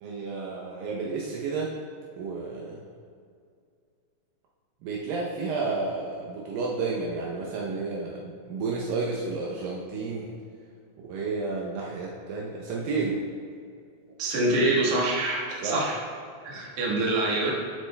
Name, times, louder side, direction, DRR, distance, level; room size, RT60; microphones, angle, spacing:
voice 1, 0.0-1.7 2.2-2.8 4.8-10.3 11.1-13.2 15.6-15.8, right 4 dB, 85° right, -3 dB, 2.0 m, -31 dB
voice 2, 14.2-16.0 16.4-17.5, right 2 dB, 55° right, -4 dB, 2.1 m, -25 dB
13.0 x 7.6 x 2.2 m, 2.3 s
omnidirectional pair, 5.0 m